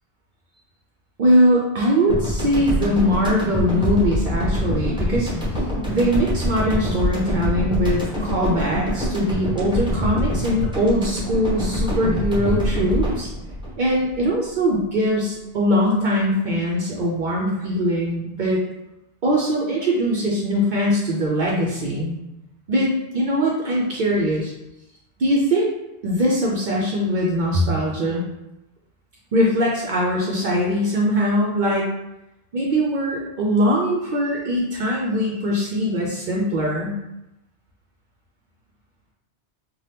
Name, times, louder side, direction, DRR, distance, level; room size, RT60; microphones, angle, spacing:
voice 1, 1.2-5.3 5.9-13.3 13.8-18.6 19.2-22.2 22.7-24.5 25.2-25.7 26.0-28.2 29.3-31.9 32.5-37.0, equal, 60° right, -3 dB, 0.5 m, -21 dB
sound 1, 2.1-14.6, left 1 dB, 5° right, 0.5 m, -25 dB
2.7 x 2.2 x 3.3 m, 0.90 s
omnidirectional pair, 1.2 m